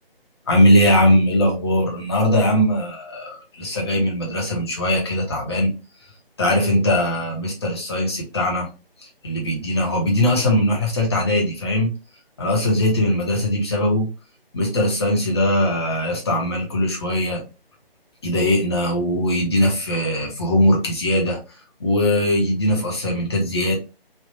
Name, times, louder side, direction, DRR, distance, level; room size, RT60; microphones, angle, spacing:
voice 1, 0.5-5.7 6.4-8.7 9.2-11.9 12.4-14.1 14.5-17.4 18.2-21.4 21.8-23.7, left 1 dB, 25° left, 1.0 m, -20 dB
3.3 x 2.7 x 2.7 m
figure-of-eight pair, 160°, 30 cm